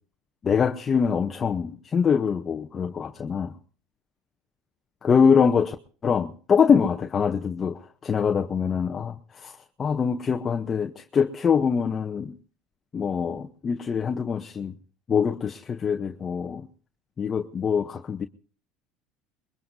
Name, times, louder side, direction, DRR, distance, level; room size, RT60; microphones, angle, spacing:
voice 1, 0.4-3.5 5.0-5.8 6.0-9.5 9.8-12.3 12.9-14.7 15.1-16.7 17.2-18.3, left 6 dB, 30° left, 0.8 m, -24 dB
22.0 x 21.5 x 2.7 m
supercardioid pair, 105°, 0 cm